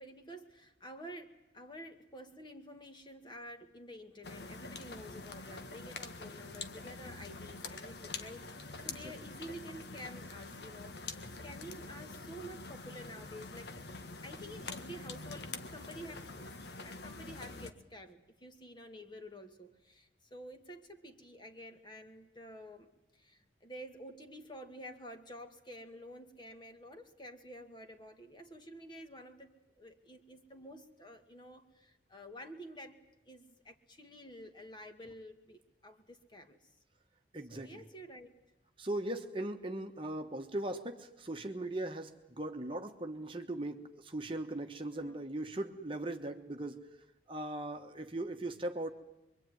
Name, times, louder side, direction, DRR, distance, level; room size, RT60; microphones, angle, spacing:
voice 1, 0.0-13.7 14.2-33.0 33.3-36.7 37.5-38.4 44.9-45.2, equal, 25° left, 5 dB, 2.1 m, -50 dB
sound 1, 4.2-17.7, left 3 dB, 65° left, 1.6 m, -46 dB
voice 2, 37.3-37.9 38.8-46.9 47.3-48.9, right 1 dB, 30° right, 5 dB, 1.4 m, -39 dB
25.5 x 23.5 x 9.4 m, 0.88 s
head